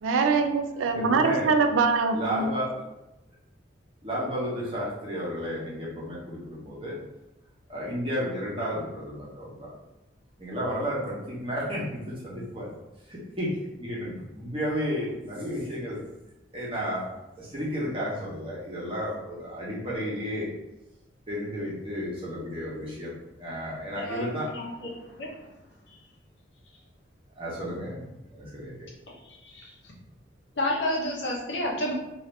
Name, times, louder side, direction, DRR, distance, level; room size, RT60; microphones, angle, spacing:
voice 1, 0.0-2.5, right 4 dB, 85° right, 6 dB, 0.3 m, -23 dB
voice 2, 0.9-1.6 2.1-2.7 4.0-7.0 7.7-9.7 10.4-12.7 13.1-16.0 16.5-17.0 17.4-20.5 21.3-24.5 27.4-28.0 28.3-28.9, equal, 30° right, -6 dB, 0.9 m, -32 dB
voice 3, 25.0-25.5 25.9-26.0 29.2-29.9 30.6-31.9, left 1 dB, 60° left, -3 dB, 0.8 m, -31 dB
2.7 x 2.5 x 3.2 m, 0.97 s
head